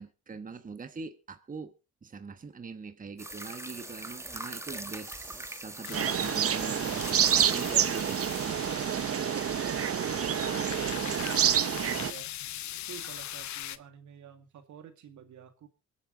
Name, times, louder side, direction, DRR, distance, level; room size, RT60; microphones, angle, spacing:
voice 1, 0.0-1.7 2.0-9.1, right 4 dB, 25° right, 1.2 m, -43 dB
sound 1, 3.2-9.4 10.3-10.4, right 2 dB, 10° right, 1.3 m, -42 dB
sound 2, 5.8-13.8, left 12 dB, 70° left, 0.8 m, -41 dB
sound 3, 5.9-12.1, right 9 dB, 50° right, 0.9 m, -28 dB
voice 2, 10.4-12.3 12.9-15.7, right 8 dB, 75° right, 2.2 m, -49 dB
24.5 x 8.5 x 3.9 m
cardioid pair, 90°, 30 cm